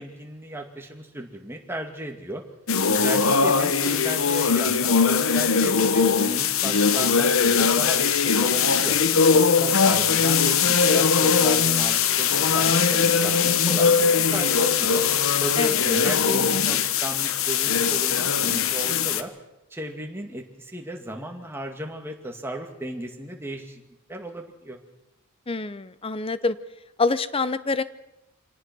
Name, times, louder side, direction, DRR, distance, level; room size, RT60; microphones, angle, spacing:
voice 1, 0.0-2.4 2.8-9.0 9.3-15.0 15.4-19.3 19.7-23.8 24.1-24.8, right 1 dB, 10° right, 2 dB, 2.2 m, -35 dB
sound 1, 2.7-19.2, left 6 dB, 65° left, 1.0 m, -21 dB
voice 2, 25.5-26.6 27.0-27.8, left 3 dB, 25° left, 15 dB, 0.7 m, -25 dB
25.5 x 18.0 x 6.2 m, 0.92 s
head